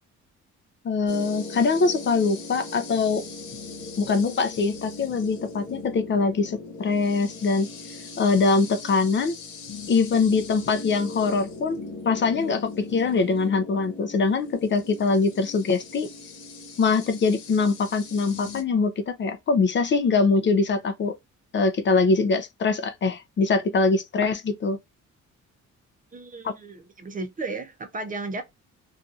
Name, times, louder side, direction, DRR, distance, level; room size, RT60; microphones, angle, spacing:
voice 1, 0.8-3.3 4.0-7.7 8.2-9.3 9.9-16.1 16.8-21.1 21.5-24.8 26.4-26.5, left 4 dB, 40° left, 0.5 m, -23 dB
sound 1, 1.1-18.6, left 3 dB, 80° left, 1.0 m, -39 dB
voice 2, 26.1-28.4, right 3 dB, 30° right, 0.5 m, -34 dB
2.7 x 2.4 x 2.3 m
cardioid pair, 115°, 30 cm